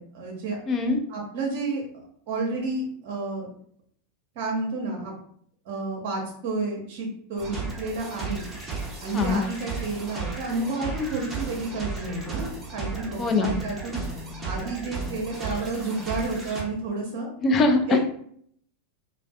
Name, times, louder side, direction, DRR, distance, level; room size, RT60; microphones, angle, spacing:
voice 1, 0.0-0.6 1.1-1.8 2.3-3.5 4.4-5.1 5.7-8.5 9.0-12.4 12.7-14.0 14.4-17.3 17.9-18.0, right 3 dB, 55° right, 0 dB, 0.7 m, -30 dB
voice 2, 0.7-1.0 9.1-9.4 13.2-13.5 17.4-18.1, left 3 dB, 30° left, 5 dB, 0.4 m, -22 dB
sound 1, 7.4-16.6, right 3 dB, 20° right, 0.8 m, -34 dB
2.4 x 2.1 x 2.4 m, 0.62 s
hypercardioid pair, 90°, 0 cm